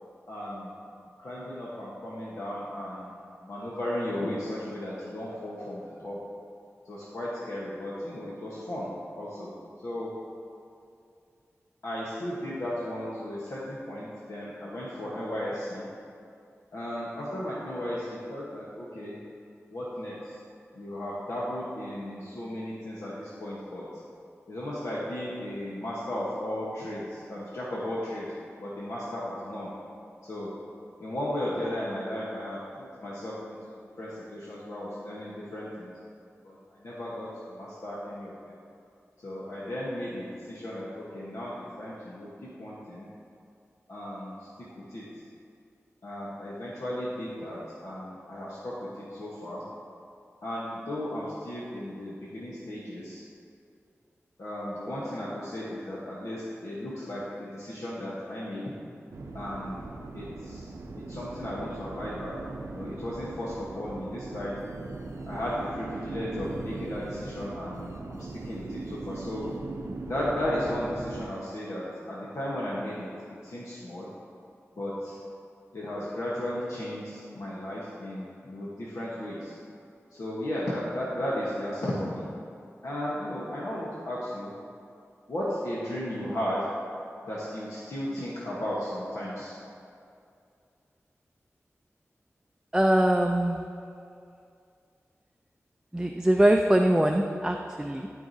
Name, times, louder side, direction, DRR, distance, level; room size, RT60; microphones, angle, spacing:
voice 1, 0.3-0.7 1.2-3.2 3.4-6.2 6.8-8.9 9.2-9.5 9.8-10.1 11.8-15.9 16.7-19.2 19.7-20.4 20.7-23.8 24.5-28.3 28.6-29.7 30.2-30.5 31.0-32.6 33.0-35.9 36.4-38.6 39.2-43.1 43.9-45.1 46.0-49.6 50.4-53.2 54.4-58.7 59.3-59.8 60.1-60.7 61.0-62.4 62.7-64.6 65.3-69.5 70.1-73.1 73.4-74.1 74.8-75.2 75.7-79.5 80.1-82.3 82.8-84.5 85.3-86.7 87.3-89.6, left 1 dB, 75° left, -7 dB, 1.2 m, -35 dB
sound 1, 59.1-71.3, right 2 dB, 70° right, 0.6 m, -39 dB
voice 2, 92.7-93.6 95.9-98.1, right 1 dB, 10° right, 3 dB, 0.4 m, -22 dB
12.0 x 4.7 x 2.7 m, 2.4 s
cardioid pair, 40°, 5 cm